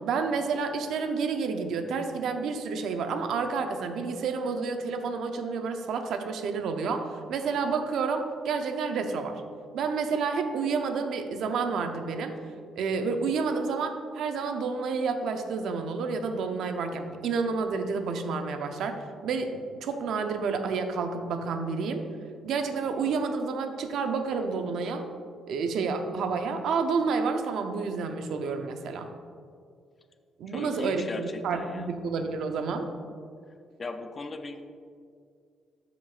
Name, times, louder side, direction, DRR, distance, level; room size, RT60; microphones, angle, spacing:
voice 1, 0.0-9.4 9.7-12.3 12.7-19.0 19.2-22.0 22.4-25.1 25.5-29.1 30.4-32.9, right 5 dB, 75° right, 6 dB, 0.7 m, -29 dB
voice 2, 30.5-31.9 33.8-34.6, left 3 dB, 35° left, 8 dB, 0.6 m, -37 dB
13.0 x 5.2 x 2.5 m, 2.2 s
cardioid pair, 90°, 0 cm